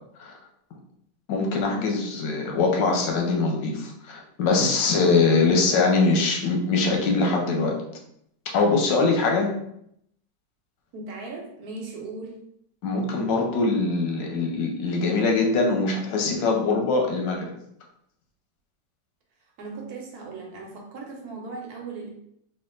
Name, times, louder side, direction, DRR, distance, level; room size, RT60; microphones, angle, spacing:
voice 1, 1.3-7.8 8.5-9.5 12.8-17.5, left 3 dB, 90° left, 1 dB, 1.4 m, -22 dB
voice 2, 10.9-12.4 19.6-22.1, right 3 dB, 70° right, 1 dB, 1.2 m, -37 dB
3.4 x 2.4 x 3.7 m, 0.74 s
omnidirectional pair, 1.9 m